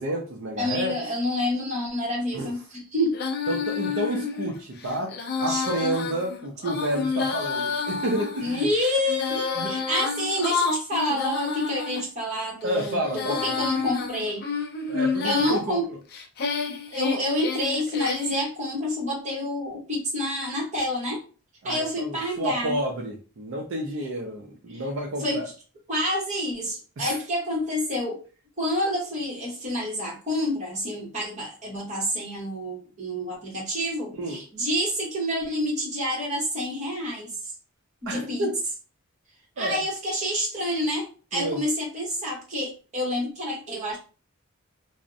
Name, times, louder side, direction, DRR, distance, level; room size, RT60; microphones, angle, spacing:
voice 1, 0.0-0.9 2.3-2.5 3.5-8.6 9.3-9.7 12.6-13.4 14.9-16.0 21.6-25.5 27.0-27.2 34.2-34.4 38.1-38.6 39.6-39.8 41.3-41.6, right 1 dB, 60° right, 0 dB, 0.4 m, -30 dB
voice 2, 0.6-3.2 5.5-5.6 8.4-14.4 15.2-15.9 16.9-21.2 21.6-22.8 24.7-24.8 25.2-25.4 25.9-28.2 28.6-37.5 38.0-38.5 39.6-44.0, left 1 dB, 30° right, -3 dB, 0.9 m, -28 dB
Female singing, 3.1-12.0 12.6-15.6 16.1-18.4, left 5 dB, 45° left, 0.3 m, -29 dB
2.5 x 2.0 x 2.5 m, 0.35 s
head